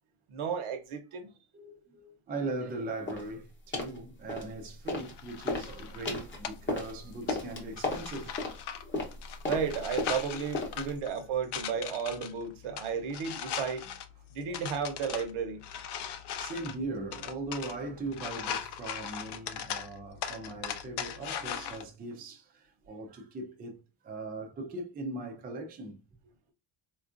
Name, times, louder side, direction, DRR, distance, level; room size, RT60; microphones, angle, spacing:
voice 1, 0.3-1.3 9.5-13.8 14.3-15.6, right 6 dB, 75° right, 0.9 m, -33 dB
voice 2, 1.5-8.4 10.9-11.0 16.4-23.8 24.0-26.0, right 2 dB, 20° right, 0.3 m, -39 dB
sound 1, 3.1-3.3 3.7-4.0 4.3-5.1 5.4-11.0, left 2 dB, 25° left, 0.8 m, -35 dB
sound 2, 4.9-21.8, left 8 dB, 55° left, 0.5 m, -40 dB
4.4 x 2.4 x 2.4 m
cardioid pair, 175°, 49 cm